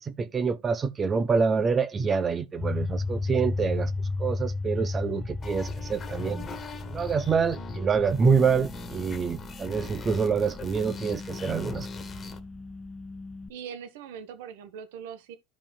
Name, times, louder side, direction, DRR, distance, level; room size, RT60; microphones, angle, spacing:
voice 1, 0.0-3.9 4.2-6.4 6.9-11.9, right 5 dB, 25° right, 0.9 m, -26 dB
sound 1, 2.6-13.5, left 3 dB, 10° left, 0.6 m, -35 dB
sound 2, 5.4-12.4, left 3 dB, 25° left, 1.8 m, -41 dB
voice 2, 13.5-15.4, right 8 dB, 80° right, 1.2 m, -41 dB
14.0 x 5.0 x 2.3 m
supercardioid pair, 110°, 0 cm